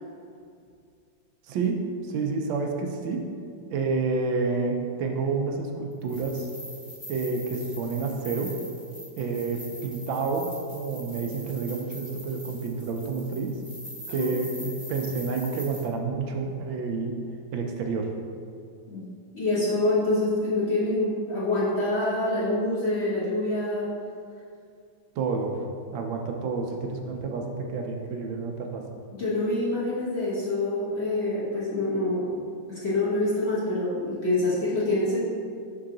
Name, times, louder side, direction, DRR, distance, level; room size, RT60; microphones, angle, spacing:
voice 1, 1.5-1.8 2.0-3.2 3.7-6.5 7.1-8.5 9.2-13.5 14.1-17.2 17.5-18.1 25.2-25.6 25.9-28.8, right 4 dB, 80° right, 2 dB, 1.4 m, -29 dB
sound 1, 6.0-15.8, equal, 20° left, 1.1 m, -42 dB
voice 2, 19.3-23.9 29.1-32.4 32.7-35.2, left 2 dB, 40° left, -9 dB, 1.2 m, -26 dB
5.7 x 4.7 x 3.8 m, 2.3 s
omnidirectional pair, 2.1 m